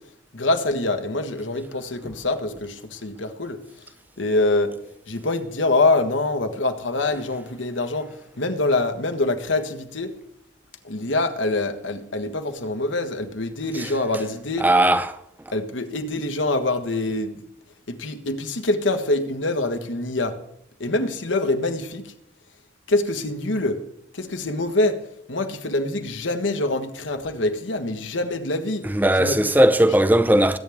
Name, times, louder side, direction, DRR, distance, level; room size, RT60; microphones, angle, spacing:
voice 1, 0.3-3.6 4.2-4.7 5.1-8.1 8.4-10.1 10.8-14.7 15.5-17.4 17.9-20.3 20.8-22.1 22.9-23.8 24.1-25.0 25.3-28.9 29.2-29.4, left 2 dB, 90° left, 1.5 m, -25 dB
voice 2, 14.6-15.1 28.9-30.6, right 1 dB, 10° right, 0.6 m, -17 dB
21.0 x 9.3 x 3.6 m
head